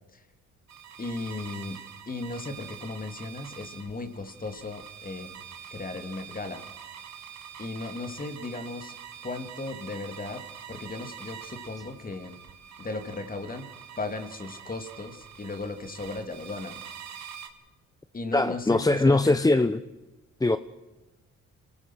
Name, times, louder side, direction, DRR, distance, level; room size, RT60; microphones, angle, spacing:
sound 1, 0.7-17.5, right 8 dB, 65° right, 2.8 m, -45 dB
voice 1, 1.0-5.4 5.7-6.6 7.6-9.0 9.2-12.4 12.8-13.7 14.0-16.8 18.1-19.7, left 3 dB, 30° left, 8 dB, 2.8 m, -36 dB
voice 2, 18.3-19.8 20.4-20.6, left 2 dB, 10° left, 12 dB, 0.8 m, -21 dB
27.0 x 19.0 x 6.3 m, 1.1 s
cardioid pair, 90°, 30 cm